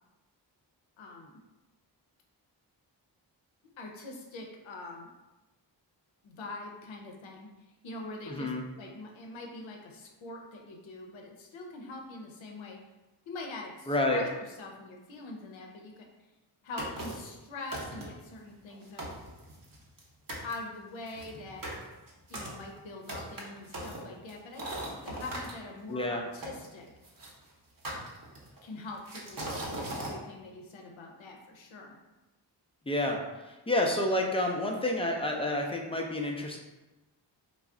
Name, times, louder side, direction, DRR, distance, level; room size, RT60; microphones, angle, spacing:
voice 1, 1.0-1.4 3.8-5.1 6.2-12.8 13.3-14.3 14.6-16.1 16.6-19.0 20.4-21.6 22.3-26.9 28.6-32.0, left 2 dB, 85° left, 1 dB, 0.6 m, -44 dB
voice 2, 8.3-8.6 13.9-14.2 25.9-26.2 32.9-36.6, left 1 dB, 15° left, 1 dB, 0.4 m, -29 dB
sound 1, 16.8-17.3 17.7-18.3 18.7-18.8 19.0-20.0 20.3-20.5 21.1-25.5 26.4-27.3 27.8-28.6 29.1-30.2, right 1 dB, 50° right, 0.8 m, -39 dB
2.3 x 2.0 x 3.6 m, 1.1 s
cardioid pair, 45°, 45 cm